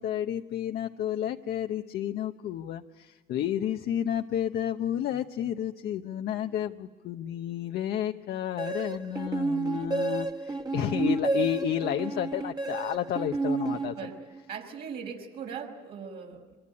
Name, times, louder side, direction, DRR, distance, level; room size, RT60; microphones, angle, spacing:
voice 1, 0.0-13.9, left 10 dB, 70° left, 6 dB, 0.9 m, -31 dB
sound 1, 8.6-14.4, right 3 dB, 25° right, 1.7 m, -31 dB
voice 2, 13.7-14.2 14.5-16.6, right 6 dB, 65° right, -1 dB, 5.2 m, -40 dB
25.0 x 22.5 x 9.8 m, 1.4 s
cardioid pair, 110°, 17 cm